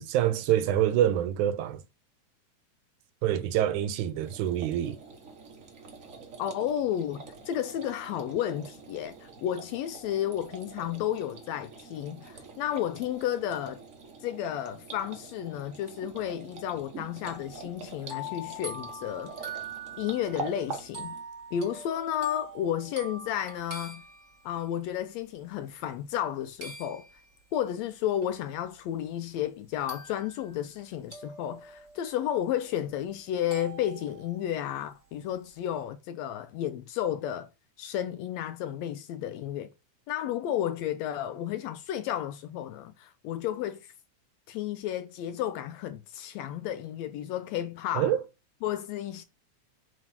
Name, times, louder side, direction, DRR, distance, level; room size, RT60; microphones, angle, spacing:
voice 1, 0.0-1.8 3.2-5.0 47.9-48.2, right 11 dB, 90° right, 2.2 m, -26 dB
sound 1, 4.1-21.2, right 4 dB, 55° right, 0.9 m, -45 dB
voice 2, 6.4-13.8 14.2-19.6 20.0-21.2 21.5-24.0 24.4-27.0 27.5-37.5 37.8-39.7 40.1-43.9 44.5-48.1 48.6-49.2, left 11 dB, 80° left, 1.6 m, -32 dB
sound 2, 17.3-24.8 26.6-27.5 28.2-28.3 29.9-30.8 31.1-32.9 33.5-34.8, right 1 dB, 30° right, 1.8 m, -44 dB
7.3 x 3.2 x 5.8 m
omnidirectional pair, 3.5 m